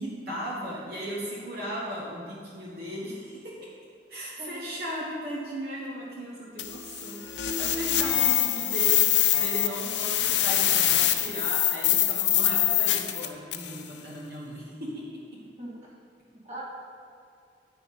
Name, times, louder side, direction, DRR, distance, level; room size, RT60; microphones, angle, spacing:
voice 1, 0.0-3.7 4.1-9.1 9.4-15.4, equal, 60° right, -6 dB, 1.4 m, -37 dB
voice 2, 4.4-4.6 15.6-15.8 16.3-16.6, right 1 dB, 40° right, -4 dB, 1.8 m, -40 dB
sound 1, 6.6-13.8, left 12 dB, 75° left, 0.6 m, -24 dB
9.5 x 6.2 x 5.0 m, 2.4 s
head